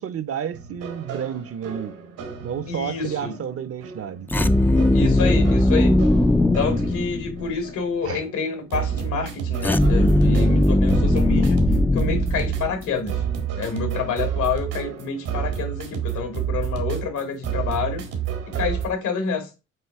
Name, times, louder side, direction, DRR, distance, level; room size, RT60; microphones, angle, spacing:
voice 1, 0.0-1.9 2.4-4.3 8.0-8.2, right 8 dB, 50° right, 0.7 m, -31 dB
sound 1, 0.5-18.9, right 9 dB, 85° right, 1.9 m, -30 dB
voice 2, 2.7-3.3 4.9-6.0 6.5-11.6 11.9-13.2 13.5-18.0 18.5-19.5, left 5 dB, 80° left, 2.4 m, -28 dB
sound 2, 4.3-7.6 9.6-12.9, left 1 dB, 5° left, 0.4 m, -19 dB
7.6 x 2.7 x 4.6 m
cardioid pair, 90°, 30 cm